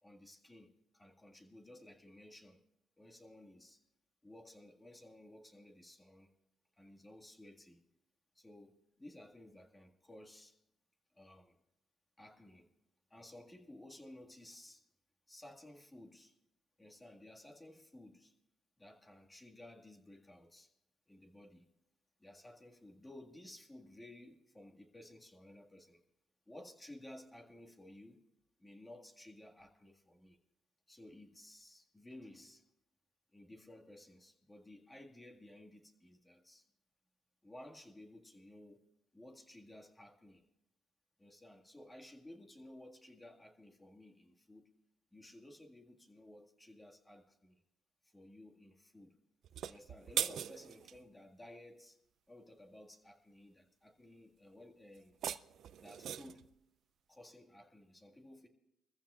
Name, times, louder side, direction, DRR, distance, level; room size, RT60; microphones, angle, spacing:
voice 1, 0.0-2.6 3.0-3.8 4.2-6.3 6.8-7.8 8.4-10.6 11.1-11.6 12.2-12.7 13.1-14.8 15.3-16.4 16.8-18.4 18.8-20.7 21.1-21.7 22.2-26.0 26.5-28.2 28.6-30.4 30.9-32.6 33.3-36.6 37.4-38.8 39.1-40.4 41.2-44.7 45.1-47.6 48.0-49.2 49.7-52.0 52.3-55.2 55.8-56.5 57.1-58.5, left 1 dB, 15° left, 2 dB, 1.9 m, -56 dB
sound 1, 49.4-51.0 55.0-56.5, right 9 dB, 70° right, 0.4 m, -40 dB
23.0 x 14.5 x 2.4 m, 0.85 s
cardioid pair, 90°, 0 cm